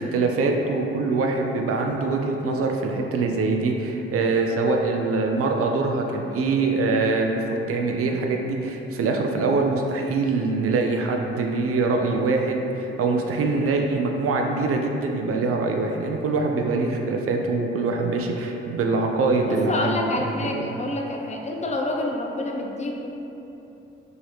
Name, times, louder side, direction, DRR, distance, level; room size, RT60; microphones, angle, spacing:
voice 1, 0.0-7.4 7.7-20.1 20.5-20.6, right 3 dB, 50° right, 2 dB, 0.4 m, -24 dB
voice 2, 19.5-23.1, left 2 dB, 25° left, 1 dB, 0.4 m, -28 dB
2.9 x 2.7 x 3.0 m, 2.9 s
hypercardioid pair, 40°, 30 cm